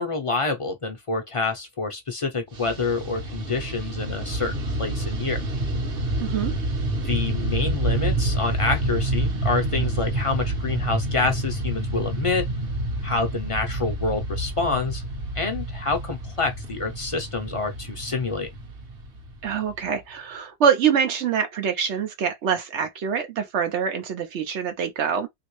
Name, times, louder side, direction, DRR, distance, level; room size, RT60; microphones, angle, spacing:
voice 1, 0.0-5.4 7.0-12.4 13.0-15.0 15.3-18.5, left 3 dB, 40° left, 0.6 m, -27 dB
Fixed-wing aircraft airplane, 2.5-20.0, right 1 dB, 60° right, 1.1 m, -28 dB
voice 2, 6.2-6.5 19.4-25.3, right 7 dB, 80° right, 1.0 m, -25 dB
3.0 x 2.8 x 3.0 m
omnidirectional pair, 1.1 m